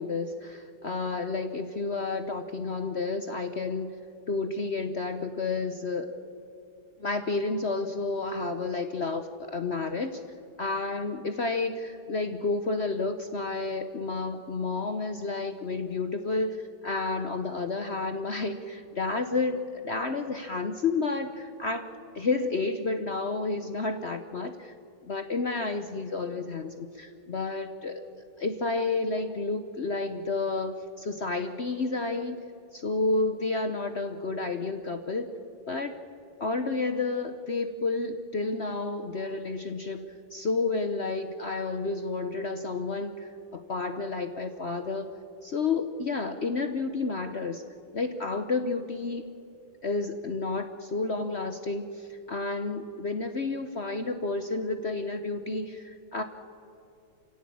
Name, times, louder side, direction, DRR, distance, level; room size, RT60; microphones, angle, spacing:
voice 1, 0.0-4.0 4.3-6.1 7.0-10.2 10.6-21.9 22.1-24.7 25.0-28.0 28.4-32.4 32.7-35.3 35.7-35.9 36.4-40.0 40.3-45.1 45.4-47.6 47.9-49.2 49.8-56.2, left 3 dB, 50° left, 8 dB, 0.8 m, -30 dB
28.5 x 16.5 x 8.6 m, 2.7 s
omnidirectional pair, 2.2 m